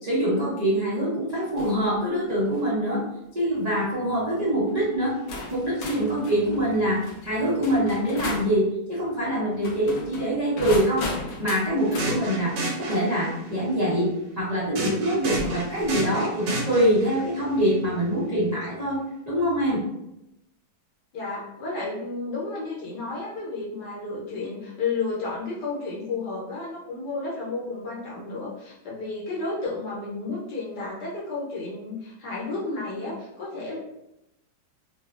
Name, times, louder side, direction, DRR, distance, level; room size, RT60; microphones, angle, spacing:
voice 1, 0.0-3.0 3.3-5.1 5.5-11.1 11.4-14.1 14.4-19.0 19.3-19.8, equal, 55° right, -10 dB, 0.4 m, -24 dB
sound 1, 1.6-1.9 2.4-2.7 3.5-3.8 4.7-4.8 5.3-8.5 9.5-12.1 13.9-14.0 15.3-16.0, left 2 dB, 85° left, 0.7 m, -36 dB
sound 2, 11.8-13.5 14.8-17.2, right 2 dB, 85° right, 1.4 m, -31 dB
voice 2, 21.1-33.8, left 3 dB, 65° left, -5 dB, 1.2 m, -32 dB
3.2 x 2.3 x 2.4 m, 0.85 s
omnidirectional pair, 2.1 m